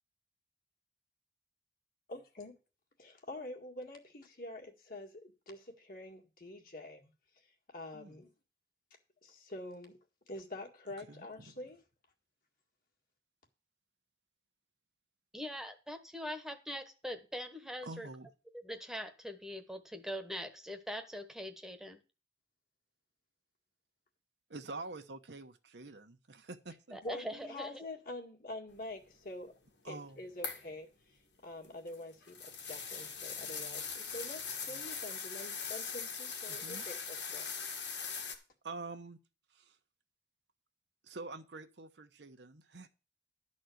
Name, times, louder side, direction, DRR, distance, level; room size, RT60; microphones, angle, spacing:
voice 1, 2.1-2.6 3.0-7.1 7.7-8.3 9.2-10.0 10.3-11.8 27.0-29.5 29.8-37.5, left 1 dB, 55° left, 2.0 m, -46 dB
voice 2, 15.3-18.1 18.6-22.0 26.9-27.9, equal, 5° right, 1.1 m, -42 dB
voice 3, 17.8-18.3 24.5-27.0 29.8-30.2 36.5-36.8 38.2-38.3 38.6-39.2 39.5-39.8 41.0-42.9, right 3 dB, 80° right, 1.0 m, -46 dB
sound 1, 30.4-30.7 31.6-38.3, left 6 dB, 85° left, 2.0 m, -41 dB
11.5 x 4.3 x 7.8 m
head